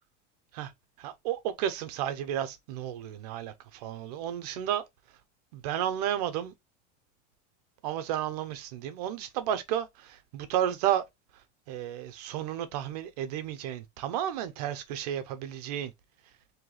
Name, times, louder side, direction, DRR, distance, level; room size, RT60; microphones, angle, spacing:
voice 1, 1.0-4.8 5.5-6.5 7.8-11.1 11.7-15.9, right 11 dB, 35° right, 0.4 m, -32 dB
3.0 x 2.7 x 3.7 m
supercardioid pair, 180°, 36 cm